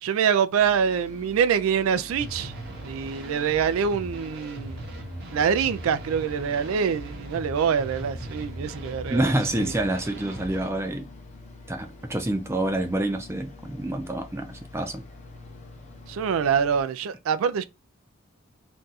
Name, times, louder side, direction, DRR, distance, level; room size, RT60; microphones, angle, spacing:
voice 1, 0.0-4.9 5.3-9.7 16.1-17.6, right 7 dB, 75° right, 0.3 m, -25 dB
sound 1, 0.5-16.8, left 2 dB, 35° left, 0.7 m, -46 dB
sound 2, 2.1-10.7, right 1 dB, 50° right, 0.7 m, -39 dB
voice 2, 9.1-11.1 11.7-15.0, right 1 dB, 10° right, 0.5 m, -27 dB
2.6 x 2.3 x 3.9 m
head